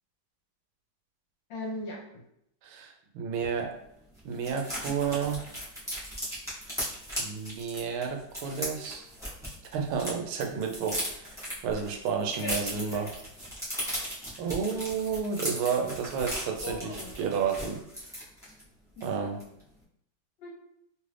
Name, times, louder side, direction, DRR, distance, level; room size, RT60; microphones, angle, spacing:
voice 1, 1.5-2.2 12.3-13.1 16.6-17.1 19.0-19.3 20.4-20.5, left 1 dB, 70° left, -3 dB, 1.4 m, -39 dB
voice 2, 2.6-3.8 4.2-5.4 7.2-9.1 9.7-11.3 11.6-13.1 14.4-17.8 19.0-19.4, right 6 dB, 90° right, 3 dB, 1.4 m, -31 dB
sound 1, 3.4-3.5 3.8-3.9 4.1-10.1 10.4-18.6 19.0-19.1 19.4-19.7, equal, 5° right, 0.7 m, -37 dB
3.4 x 2.5 x 3.2 m, 0.77 s
omnidirectional pair, 2.2 m